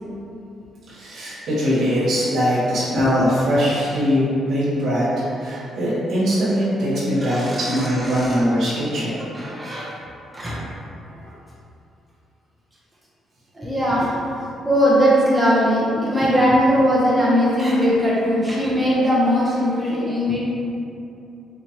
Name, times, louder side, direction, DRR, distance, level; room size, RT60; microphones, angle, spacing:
voice 1, 0.9-9.2, equal, 70° right, -9 dB, 1.4 m, -21 dB
voice 2, 7.2-8.4 9.3-9.9 10.3-10.7 11.1-11.3 13.5-20.4, equal, 10° right, -7 dB, 0.8 m, -20 dB
4.3 x 2.5 x 3.0 m, 2.7 s
cardioid pair, 90°, 0 cm